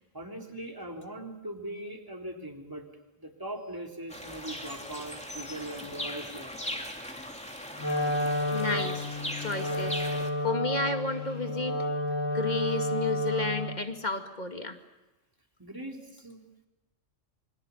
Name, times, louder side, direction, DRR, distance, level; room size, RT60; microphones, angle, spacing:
voice 1, 0.1-2.9 3.2-6.6 7.0-7.2 15.6-16.4, right 1 dB, 15° right, 2 dB, 3.6 m, -40 dB
sound 1, 4.1-10.3, equal, 5° left, 2.7 m, -39 dB
Wind instrument woodwind instrument, 7.8-13.8, left 1 dB, 75° left, 6.9 m, -30 dB
voice 2, 8.5-10.0 10.4-11.8 12.3-14.8, left 3 dB, 35° left, 5 dB, 2.3 m, -32 dB
28.0 x 24.0 x 7.2 m, 1.0 s
omnidirectional pair, 1.3 m